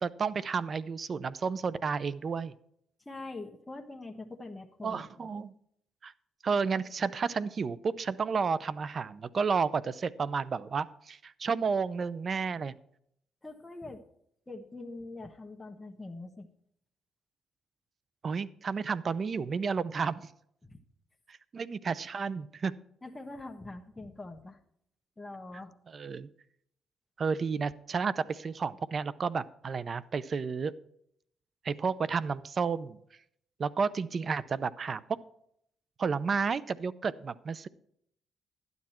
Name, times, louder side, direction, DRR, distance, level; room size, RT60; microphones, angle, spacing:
voice 1, 0.0-2.5 4.8-5.5 6.0-6.1 6.4-12.7 18.2-20.3 21.3-22.7 25.9-26.3 27.2-30.7 31.6-33.0 33.6-35.0 36.0-37.7, right 5 dB, 45° right, 18 dB, 0.6 m, -31 dB
voice 2, 3.0-5.3 13.4-14.0 14.5-16.5 20.6-20.8 23.0-24.6 25.2-25.7, left 2 dB, 15° left, 3 dB, 1.3 m, -43 dB
12.0 x 9.6 x 4.4 m, 0.70 s
cardioid pair, 90°, 0 cm